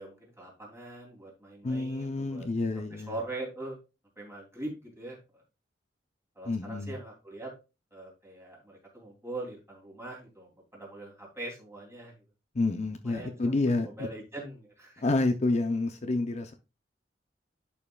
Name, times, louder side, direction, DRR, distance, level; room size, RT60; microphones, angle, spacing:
voice 1, 0.0-2.5 2.9-3.8 4.2-5.4 6.3-7.5 7.9-12.1 13.0-15.0, right 2 dB, 15° right, 2.9 m, -42 dB
voice 2, 1.6-3.2 6.4-6.9 12.5-13.9 15.0-16.5, left 2 dB, 40° left, 0.6 m, -28 dB
11.0 x 5.5 x 2.3 m
head